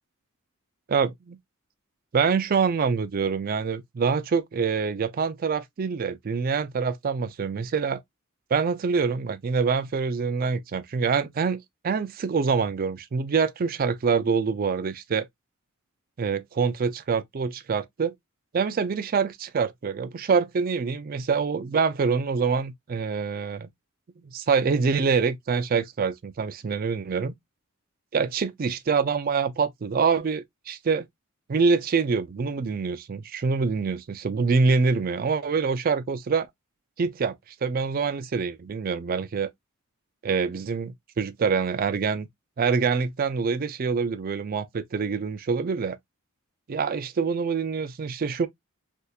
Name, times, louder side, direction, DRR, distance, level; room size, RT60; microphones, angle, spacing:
voice 1, 0.9-1.4 2.1-8.0 8.5-11.6 11.8-15.3 16.2-18.1 18.5-23.7 24.2-27.3 28.1-31.1 31.5-36.5 37.0-37.3 37.6-39.5 40.2-42.3 42.6-46.0 46.7-48.5, right 5 dB, 40° right, 0.4 m, -25 dB
3.5 x 2.7 x 2.3 m
head